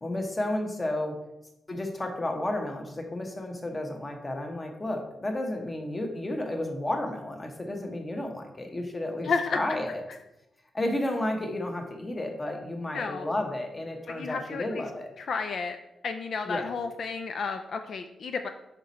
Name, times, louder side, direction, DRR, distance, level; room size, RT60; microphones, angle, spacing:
voice 1, 0.0-1.2 1.7-10.0 10.7-15.1 16.5-16.7, left 1 dB, 20° left, 3 dB, 1.0 m, -32 dB
voice 2, 9.2-9.6 12.9-13.3 14.1-14.8 15.2-15.8 16.0-18.5, left 5 dB, 60° left, 6 dB, 0.4 m, -31 dB
5.8 x 5.2 x 4.1 m, 0.91 s
wide cardioid pair, 150°, 0 cm